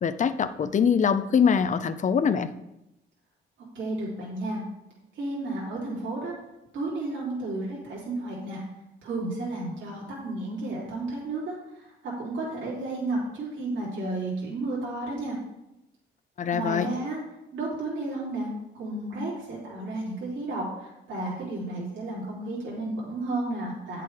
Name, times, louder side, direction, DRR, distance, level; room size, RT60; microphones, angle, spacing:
voice 1, 0.0-2.5 16.4-16.9, left 7 dB, 40° left, 12 dB, 0.6 m, -23 dB
voice 2, 3.8-4.6 5.2-6.3 6.7-8.6 9.0-15.3 16.5-17.2 17.5-18.5 18.7-24.0, right 2 dB, 70° right, -6 dB, 3.5 m, -32 dB
8.8 x 6.8 x 4.9 m, 0.90 s
cardioid pair, 90°, 20 cm